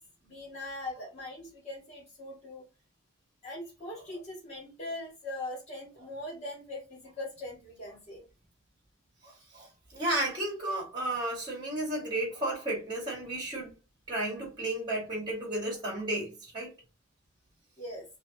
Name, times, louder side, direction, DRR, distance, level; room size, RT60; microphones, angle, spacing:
voice 1, 0.2-2.6 3.4-8.2 17.8-18.0, left 1 dB, 35° left, 1.8 m, -41 dB
voice 2, 9.2-13.7 14.1-16.7, right 1 dB, 25° right, 1.8 m, -33 dB
4.4 x 2.8 x 2.8 m
head